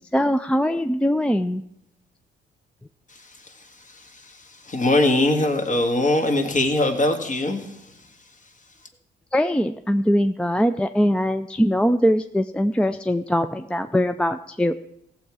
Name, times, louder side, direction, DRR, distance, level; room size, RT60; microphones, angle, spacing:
voice 1, 0.0-1.6 9.3-14.7, equal, 5° left, 9 dB, 0.4 m, -22 dB
voice 2, 3.1-8.1, left 2 dB, 40° left, 5 dB, 1.8 m, -23 dB
16.5 x 7.4 x 4.8 m, 0.77 s
cardioid pair, 90°, 20 cm